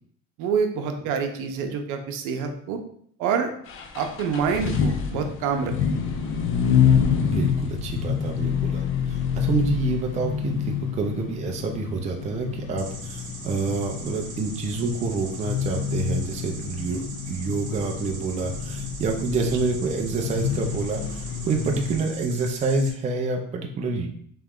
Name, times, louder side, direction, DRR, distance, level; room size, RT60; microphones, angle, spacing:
voice 1, 0.4-2.8 3.2-3.5 3.9-5.7 19.4-19.5, right 6 dB, 75° right, 5 dB, 0.7 m, -26 dB
sound 1, 3.7-22.0, left 7 dB, 40° left, 0.5 m, -27 dB
voice 2, 7.2-24.1, right 3 dB, 25° right, 2 dB, 0.4 m, -27 dB
sound 2, 12.8-22.9, right 3 dB, 40° right, 0.9 m, -41 dB
3.4 x 3.0 x 3.6 m, 0.64 s
cardioid pair, 150°, 31 cm